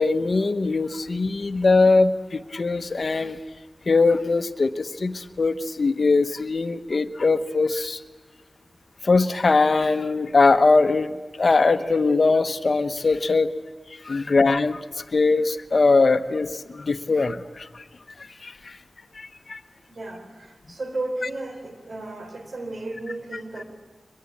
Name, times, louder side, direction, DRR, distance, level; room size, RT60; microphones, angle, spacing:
voice 1, 0.0-3.4 3.9-8.0 9.0-13.5 14.0-14.8 15.1-17.7 18.4-18.7 19.2-19.6, left 3 dB, 60° left, 10 dB, 1.0 m, -21 dB
voice 2, 19.9-23.6, right 2 dB, 70° right, 6 dB, 3.8 m, -34 dB
23.0 x 22.0 x 8.5 m, 1.3 s
wide cardioid pair, 65°, 0 cm